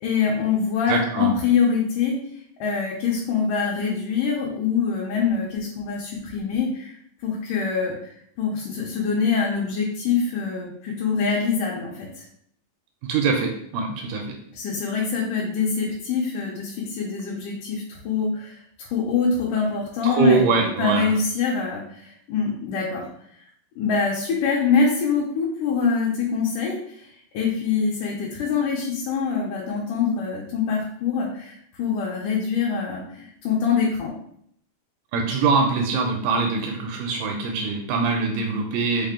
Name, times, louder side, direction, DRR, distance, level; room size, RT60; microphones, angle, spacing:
voice 1, 0.0-2.2 2.6-6.9 7.2-8.1 8.4-12.3 14.5-23.1 23.8-27.1 27.3-34.1, left 5 dB, 75° left, -4 dB, 2.0 m, -24 dB
voice 2, 0.9-1.3 13.0-14.4 20.0-21.1 35.1-39.1, right 4 dB, 80° right, 2 dB, 2.0 m, -23 dB
5.5 x 2.0 x 3.6 m, 0.68 s
omnidirectional pair, 4.1 m